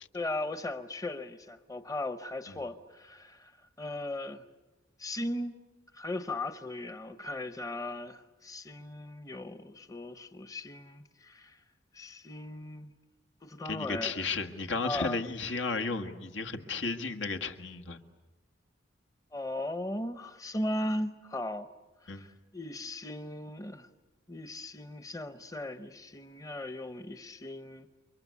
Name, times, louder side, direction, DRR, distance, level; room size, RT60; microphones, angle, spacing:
voice 1, 0.1-3.5 3.8-4.4 5.0-5.5 5.9-11.6 11.9-12.9 13.4-14.2 14.8-15.2 19.3-21.7 22.0-23.9 24.3-27.9, left 1 dB, 20° left, 0.8 m, -37 dB
voice 2, 13.7-18.0 22.1-22.2, left 4 dB, 85° left, 1.8 m, -34 dB
29.5 x 24.0 x 8.4 m
head